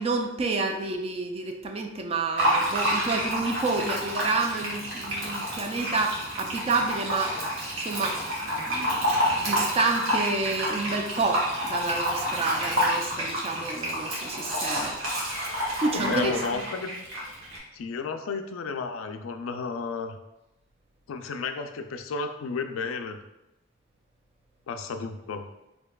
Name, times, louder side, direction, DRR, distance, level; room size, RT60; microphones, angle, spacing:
voice 1, 0.0-7.4 7.8-8.2 8.5-9.0 9.3-15.0 15.8-16.3, right 3 dB, 30° right, 4 dB, 0.3 m, -29 dB
Fill (with liquid), 2.4-17.6, equal, 75° right, 1.2 m, -29 dB
voice 2, 15.9-16.9 17.7-20.2 21.1-23.2 24.7-25.5, left 4 dB, 85° left, 7 dB, 0.4 m, -32 dB
4.4 x 2.7 x 2.3 m, 0.93 s
head